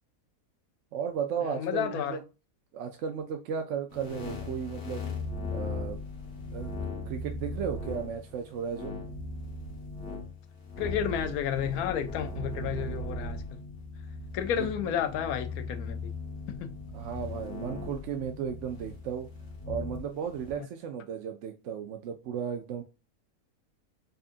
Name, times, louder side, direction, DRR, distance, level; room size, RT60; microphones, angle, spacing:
voice 1, 0.9-2.2 2.7-5.0 5.5-6.0 6.5-6.7 7.1-8.9 14.5-14.7 16.9-19.3 19.7-22.8, right 7 dB, 65° right, 0.8 m, -35 dB
voice 2, 1.4-2.2 10.8-13.4 14.3-16.1 16.5-16.8, left 9 dB, 90° left, 1.1 m, -31 dB
sound 1, 3.9-20.5, left 2 dB, 50° left, 1.4 m, -38 dB
5.3 x 2.5 x 2.5 m
omnidirectional pair, 1.5 m